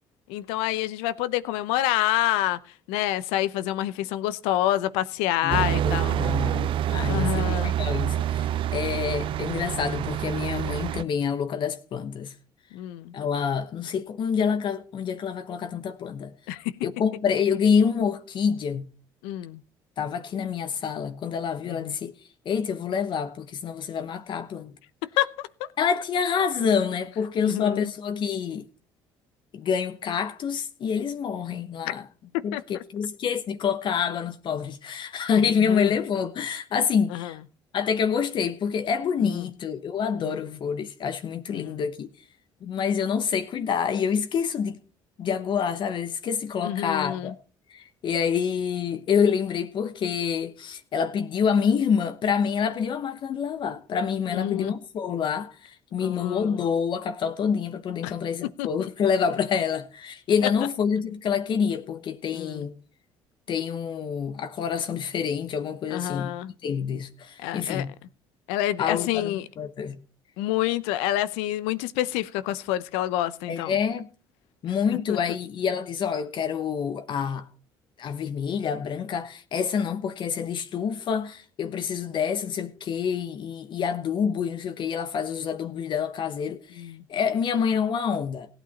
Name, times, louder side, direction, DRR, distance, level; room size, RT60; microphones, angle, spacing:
voice 1, 0.3-2.6 2.9-6.2 7.0-7.7 12.7-13.1 16.5-16.7 19.2-19.6 21.7-21.9 25.2-25.3 27.4-27.9 32.5-32.8 35.3-35.9 37.1-37.3 39.2-39.4 40.2-40.4 41.5-41.8 46.6-47.3 54.3-54.7 56.0-56.6 58.0-58.1 58.6-58.7 62.3-62.7 65.9-66.5 67.4-67.9 68.5-69.5 70.4-73.8 75.1-75.2 86.8-87.0, left 14 dB, 90° left, 0.7 m, -28 dB
voice 2, 5.4-12.3 13.1-16.3 16.8-18.9 20.0-22.1 22.4-24.7 25.8-28.7 29.5-32.1 32.4-37.4 37.7-42.1 42.6-44.8 45.2-47.3 47.7-62.7 63.5-66.3 66.6-68.0 68.8-70.0 73.5-74.1 74.6-77.5 78.0-88.5, left 7 dB, 55° left, 1.0 m, -27 dB
sound 1, 5.5-11.0, right 11 dB, 60° right, 0.5 m, -27 dB
16.5 x 8.9 x 4.2 m
supercardioid pair, 85°, 10 cm